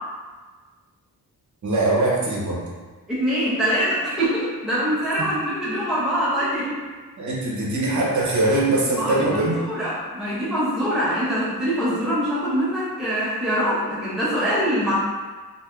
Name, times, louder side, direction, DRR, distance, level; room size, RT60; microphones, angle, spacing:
voice 1, 1.6-2.6 5.2-5.3 7.2-9.6, right 2 dB, 50° right, -4 dB, 0.8 m, -22 dB
voice 2, 3.1-6.8 8.9-14.9, equal, ahead, -10 dB, 0.7 m, -24 dB
3.2 x 2.5 x 2.3 m, 1.4 s
wide cardioid pair, 120°, 38 cm